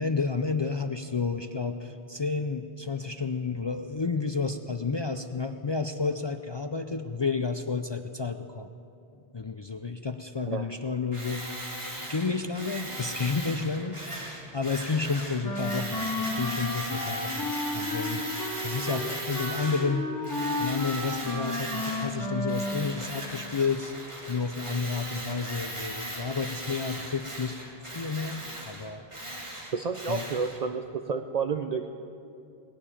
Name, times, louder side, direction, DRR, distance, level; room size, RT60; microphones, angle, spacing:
voice 1, 0.0-8.7 9.3-11.4 11.8-14.0 14.5-18.3 18.6-27.6 27.8-29.0 30.1-30.2, left 4 dB, 40° left, 7 dB, 0.4 m, -31 dB
Tools, 11.1-19.9 20.2-22.2 22.5-30.6, right 1 dB, 30° right, 2.5 m, -38 dB
Wind instrument woodwind instrument, 15.4-22.9, left 2 dB, 20° left, 2.9 m, -32 dB
voice 2, 29.7-31.9, right 5 dB, 50° right, 7 dB, 0.6 m, -30 dB
19.0 x 7.0 x 10.0 m, 2.7 s
omnidirectional pair, 1.0 m